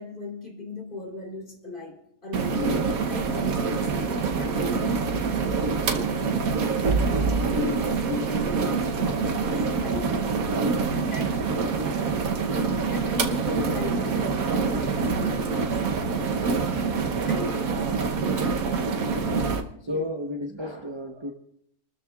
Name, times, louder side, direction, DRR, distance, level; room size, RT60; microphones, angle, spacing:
voice 1, 0.0-2.0 2.2-2.7 3.1-5.3 5.9-6.5 7.4-10.3 10.9-12.2 12.8-15.8 17.2-17.7 19.8-20.1, left 2 dB, 35° left, 0 dB, 3.7 m, -37 dB
sound 1, 2.3-19.6, right 4 dB, 70° right, 1.4 m, -25 dB
voice 2, 18.9-19.4 19.8-21.3, left 1 dB, 20° right, 2 dB, 1.0 m, -33 dB
29.0 x 13.5 x 2.4 m, 0.72 s
omnidirectional pair, 1.6 m